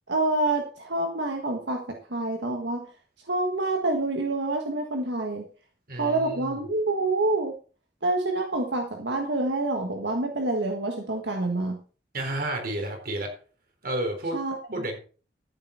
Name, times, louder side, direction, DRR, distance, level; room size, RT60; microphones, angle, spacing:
voice 1, 0.1-1.8 2.1-2.9 3.3-5.4 6.0-7.5 8.0-11.8 14.3-14.8, right 2 dB, 85° right, 2 dB, 1.6 m, -27 dB
voice 2, 5.9-6.6 12.1-13.3 13.8-14.4 14.7-15.0, right 1 dB, 55° right, 4 dB, 3.9 m, -31 dB
14.0 x 8.0 x 4.4 m, 0.38 s
head